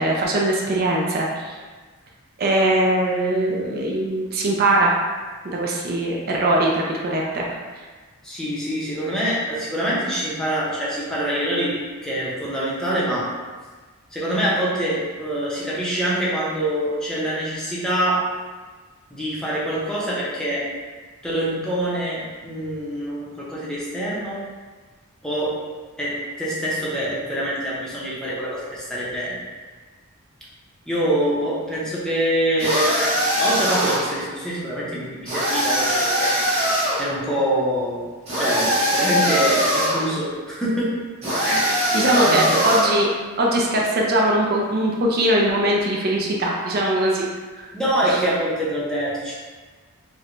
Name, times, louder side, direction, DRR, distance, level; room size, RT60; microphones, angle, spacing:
voice 1, 0.0-1.6 2.4-4.9 5.4-7.4 7.8-7.9 41.9-43.1 43.4-47.3 47.6-47.7 48.0-48.2, right 1 dB, 45° right, -2 dB, 0.4 m, -21 dB
voice 2, 8.2-11.8 12.0-13.3 14.1-18.3 19.1-20.7 21.2-24.4 25.2-25.6 26.0-29.4 30.9-36.4 37.0-38.0 38.4-40.9 41.4-41.7 42.2-42.6 47.7-49.3, right 1 dB, 5° left, -8 dB, 0.6 m, -25 dB
sound 1, 32.6-34.2 35.3-37.1 38.3-40.1 41.2-43.0, equal, 30° right, 0.9 m, -21 dB
4.4 x 2.1 x 2.5 m, 1.4 s
head